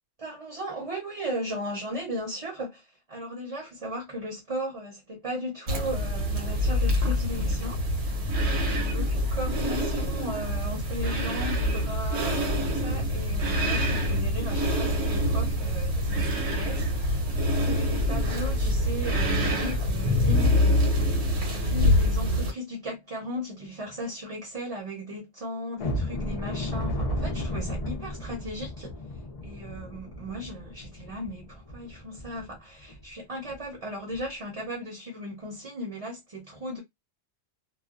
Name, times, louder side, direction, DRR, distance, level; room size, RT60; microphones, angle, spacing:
voice 1, 0.2-7.8 8.5-20.9 21.5-29.0 29.4-36.8, equal, 30° right, 0.7 m, -36 dB
sound 1, 5.7-22.5, left 1 dB, 60° right, 1.0 m, -25 dB
sound 2, 25.8-32.5 32.9-33.0 33.5-33.6 34.1-34.3, left 1 dB, 45° left, 0.5 m, -34 dB
2.4 x 2.1 x 2.4 m
omnidirectional pair, 1.3 m